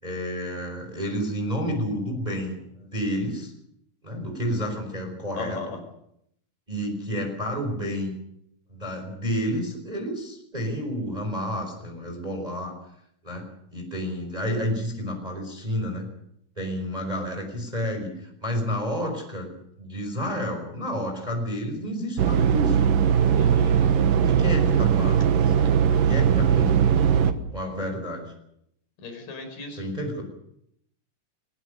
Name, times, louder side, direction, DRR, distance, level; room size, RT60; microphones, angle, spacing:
voice 1, 0.0-3.5 4.0-5.6 6.7-8.1 8.7-12.8 13.2-13.4 13.7-16.1 16.6-19.5 19.8-22.8 24.2-25.7 26.0-26.9 27.5-28.3 29.8-30.2, equal, 10° right, 4 dB, 4.3 m, -30 dB
voice 2, 5.4-5.8 23.3-23.7 29.0-29.9, left 3 dB, 50° left, 5 dB, 6.5 m, -36 dB
sound 1, 22.2-27.3, right 7 dB, 65° right, 2.5 m, -20 dB
23.0 x 21.0 x 6.6 m, 0.74 s
omnidirectional pair, 5.0 m